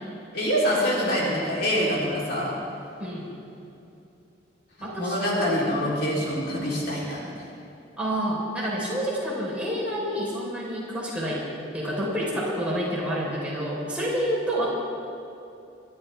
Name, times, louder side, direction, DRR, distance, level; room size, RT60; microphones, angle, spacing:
voice 1, 0.3-2.5 5.0-7.4, equal, 60° left, -5 dB, 3.6 m, -25 dB
voice 2, 4.8-5.5 8.0-11.4 11.7-14.7, equal, 5° right, -7 dB, 4.1 m, -28 dB
23.5 x 12.5 x 3.5 m, 2.7 s
head